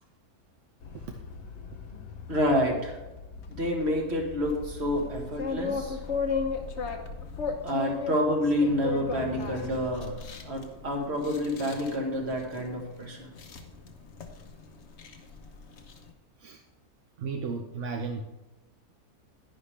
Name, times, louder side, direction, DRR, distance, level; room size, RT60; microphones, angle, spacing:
sound 1, 0.8-7.6, left 5 dB, 75° left, 1.4 m, -43 dB
voice 1, 2.3-3.0 3.6-6.0 7.6-13.3, equal, 40° right, 1 dB, 1.9 m, -28 dB
sound 2, 4.4-16.1, left 5 dB, 50° left, 1.1 m, -36 dB
voice 2, 17.2-18.2, right 4 dB, 60° right, 4 dB, 0.9 m, -34 dB
10.5 x 10.0 x 3.3 m, 1.1 s
omnidirectional pair, 1.7 m